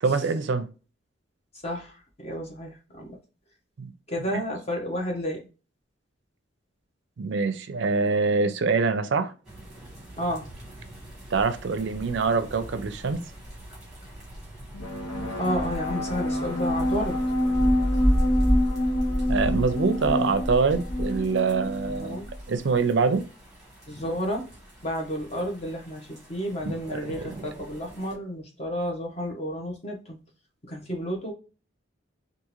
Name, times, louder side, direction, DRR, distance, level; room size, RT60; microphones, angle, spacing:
voice 1, 0.0-0.7 3.8-3.9 4.3-4.4 7.2-9.3 11.3-13.2 19.3-22.2 22.5-23.2 26.6-27.4, right 4 dB, 65° right, 0.4 m, -25 dB
voice 2, 1.6-3.2 4.1-5.4 10.2-10.5 15.4-17.2 21.7-22.3 23.9-24.5 24.8-30.2 30.7-31.3, equal, 30° left, 0.9 m, -31 dB
sound 1, 9.5-28.1, equal, 5° right, 1.2 m, -33 dB
sound 2, 14.7-22.3, left 1 dB, 80° left, 1.0 m, -27 dB
3.6 x 2.5 x 3.0 m
head